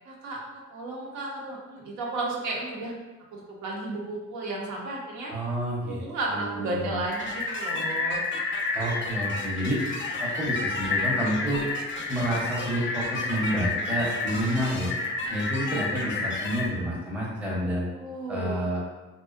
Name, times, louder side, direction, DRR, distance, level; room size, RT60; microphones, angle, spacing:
voice 1, 0.0-2.9 3.3-5.3 5.8-8.2 17.9-18.7, right 2 dB, 75° right, -2 dB, 0.6 m, -33 dB
voice 2, 5.3-6.0 6.3-6.9 8.7-9.8 10.2-11.6 12.1-14.9 15.3-17.9 18.3-18.8, equal, 5° right, -6 dB, 0.7 m, -29 dB
sound 1, 7.1-16.7, left 3 dB, 40° left, 0.4 m, -30 dB
2.4 x 2.1 x 2.4 m, 1.2 s
cardioid pair, 90°, 30 cm